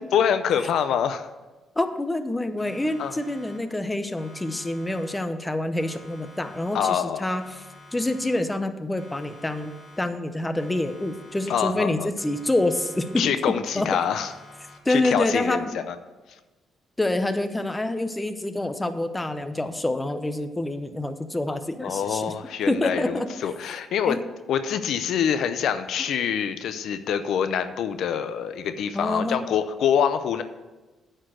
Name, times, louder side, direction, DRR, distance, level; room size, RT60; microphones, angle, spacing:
voice 1, 0.1-1.3 3.0-3.1 6.7-7.2 11.5-12.1 13.2-14.3 14.9-16.0 21.8-24.2 24.5-30.4, left 8 dB, 75° left, 10 dB, 0.5 m, -25 dB
voice 2, 1.8-7.4 7.9-13.3 13.8-13.9 14.9-15.6 17.0-22.2 22.7-23.3 24.1-24.2 28.9-29.4, left 1 dB, 15° left, 9 dB, 0.7 m, -27 dB
Siren, 2.6-3.9 4.2-5.5 5.8-7.1 7.4-8.7 9.0-10.3 10.6-11.9 12.2-13.5 13.8-15.1, left 2 dB, 30° left, 1.9 m, -49 dB
9.4 x 4.5 x 7.5 m, 1.2 s
cardioid pair, 90°, 0 cm